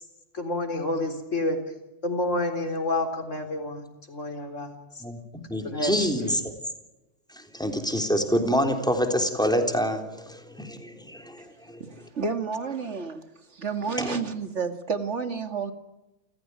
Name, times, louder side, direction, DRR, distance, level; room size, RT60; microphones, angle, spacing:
voice 1, 0.3-1.6 2.0-4.7 5.6-6.4, left 2 dB, 85° left, 6 dB, 4.2 m, -29 dB
voice 2, 5.0-6.4 7.5-11.8 14.0-14.2, equal, 5° left, 5 dB, 3.5 m, -26 dB
voice 3, 11.8-13.2 13.5-15.7, right 5 dB, 70° right, 8 dB, 2.4 m, -30 dB
29.0 x 15.5 x 9.7 m, 1.0 s
omnidirectional pair, 1.2 m